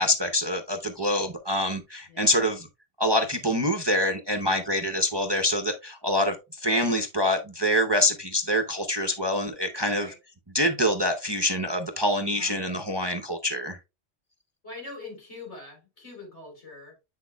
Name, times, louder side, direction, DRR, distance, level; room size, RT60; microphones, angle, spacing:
voice 1, 0.0-2.7 3.0-10.1 10.5-13.8, left 1 dB, 30° right, 0.6 m, -25 dB
voice 2, 12.3-12.6 14.6-16.9, left 3 dB, 80° left, 4.1 m, -43 dB
8.2 x 6.1 x 2.2 m
omnidirectional pair, 1.2 m